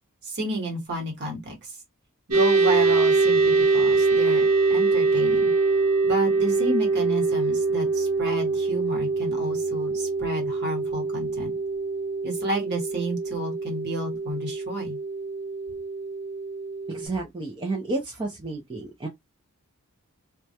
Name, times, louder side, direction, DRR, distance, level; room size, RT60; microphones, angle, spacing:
voice 1, 0.2-1.5 2.3-5.5 6.0-11.6 12.2-15.0, right 1 dB, 50° right, 1.0 m, -31 dB
sound 1, 2.3-17.1, right 4 dB, 80° right, 0.8 m, -24 dB
voice 2, 16.9-19.1, right 2 dB, 20° right, 0.4 m, -31 dB
2.2 x 2.0 x 2.7 m
head